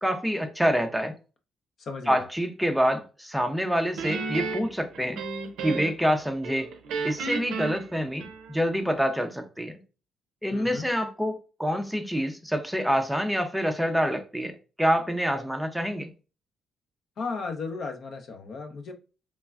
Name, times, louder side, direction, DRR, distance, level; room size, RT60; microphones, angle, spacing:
voice 1, 0.0-1.1 2.1-5.2 5.6-6.7 7.0-9.7 10.4-14.5 14.8-16.1, equal, ahead, 0.4 m, -26 dB
voice 2, 1.8-2.2 10.5-10.9 17.2-18.9, left 4 dB, 60° left, 0.6 m, -35 dB
Guitar, 4.0-6.1 6.4-8.7, right 4 dB, 85° right, 0.5 m, -33 dB
3.1 x 2.1 x 2.3 m
cardioid pair, 90°, 0 cm